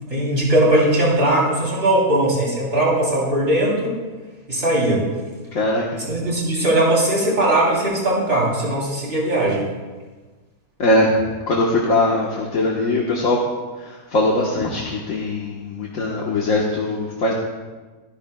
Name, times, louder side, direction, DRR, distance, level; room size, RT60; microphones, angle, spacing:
voice 1, 0.1-4.0 4.5-5.1 6.1-9.7, right 1 dB, 40° right, -4 dB, 3.4 m, -19 dB
voice 2, 5.5-6.0 10.8-11.1 11.5-13.4 13.8-17.3, left 2 dB, 65° left, -3 dB, 1.6 m, -21 dB
23.5 x 11.5 x 2.3 m, 1.3 s
omnidirectional pair, 1.6 m